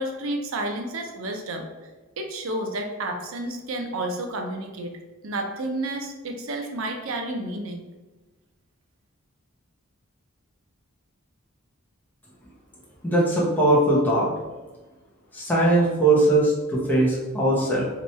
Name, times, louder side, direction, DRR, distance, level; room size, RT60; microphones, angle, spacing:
voice 1, 0.0-1.7 2.2-7.9, right 1 dB, 65° right, 3 dB, 0.5 m, -31 dB
voice 2, 13.0-14.3 15.3-17.8, right 1 dB, 10° left, -6 dB, 0.6 m, -20 dB
2.9 x 2.2 x 4.1 m, 1.2 s
head